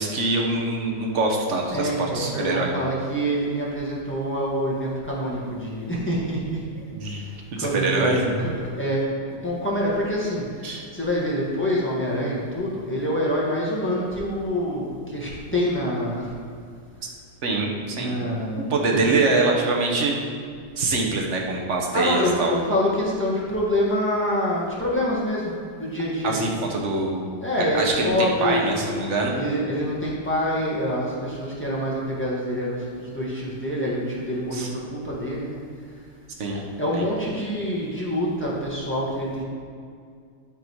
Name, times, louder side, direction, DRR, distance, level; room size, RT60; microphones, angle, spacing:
voice 1, 0.0-2.7 6.9-7.2 7.5-8.4 10.6-10.8 17.4-18.2 18.6-20.2 20.8-22.5 26.2-27.3 27.6-29.3 34.5-34.7 36.4-36.6 36.9-37.1, right 3 dB, 50° right, 0 dB, 1.3 m, -24 dB
voice 2, 1.7-6.6 7.1-9.0 9.3-16.3 17.9-19.3 21.9-25.5 25.8-26.4 27.4-28.7 29.3-35.6 36.5-39.4, equal, 5° left, -6 dB, 1.6 m, -26 dB
11.5 x 3.9 x 4.7 m, 2.2 s
omnidirectional pair, 1.8 m